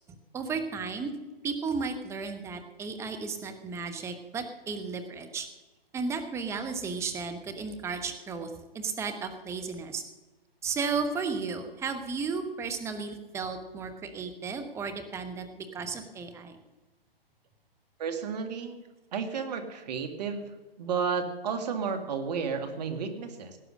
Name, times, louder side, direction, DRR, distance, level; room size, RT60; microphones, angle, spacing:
voice 1, 0.3-1.1 1.4-5.5 5.9-10.0 10.6-16.6, right 5 dB, 10° right, 6 dB, 1.1 m, -34 dB
voice 2, 18.0-18.8 19.1-23.6, right 6 dB, 45° right, 8 dB, 2.0 m, -32 dB
17.5 x 9.3 x 6.4 m, 1.1 s
hypercardioid pair, 140°, 30 cm